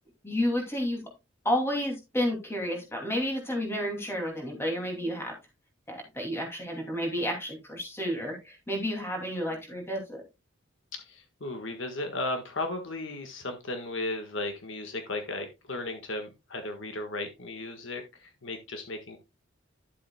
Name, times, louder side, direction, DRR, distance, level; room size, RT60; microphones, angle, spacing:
voice 1, 0.2-1.1 1.4-5.3 5.9-10.2, equal, 10° left, 1 dB, 2.6 m, -31 dB
voice 2, 10.9-19.2, left 2 dB, 65° left, 5 dB, 1.6 m, -35 dB
11.0 x 7.6 x 2.3 m, 0.24 s
head